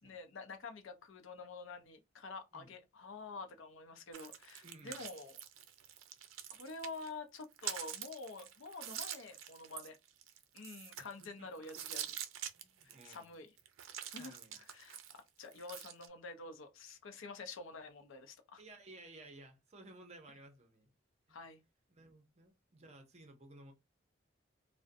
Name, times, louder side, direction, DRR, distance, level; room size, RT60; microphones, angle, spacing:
voice 1, 0.0-5.4 6.5-10.0 10.5-12.1 12.8-13.5 14.1-18.6 21.3-21.6, left 3 dB, 85° left, 0.6 m, -48 dB
sound 1, 4.1-7.1 7.4-11.2 11.6-13.2 13.6-16.1, right 10 dB, 90° right, 0.4 m, -46 dB
voice 2, 4.6-5.0 11.0-11.5 12.5-13.4 14.2-14.6 18.6-20.9 21.3-21.4 21.9-23.7, right 2 dB, 35° right, 0.6 m, -56 dB
2.5 x 2.1 x 2.5 m
head